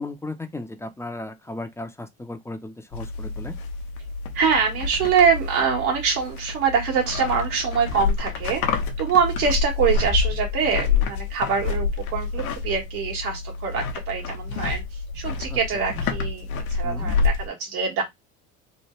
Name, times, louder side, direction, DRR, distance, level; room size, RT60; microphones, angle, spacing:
voice 1, 0.0-3.6 15.5-15.6 16.8-17.1, left 2 dB, 5° left, 0.3 m, -35 dB
sound 1, 2.9-17.5, left 4 dB, 85° left, 0.7 m, -28 dB
voice 2, 4.3-18.0, right 6 dB, 80° right, 1.4 m, -24 dB
3.1 x 2.2 x 3.0 m
hypercardioid pair, 75°, 43 cm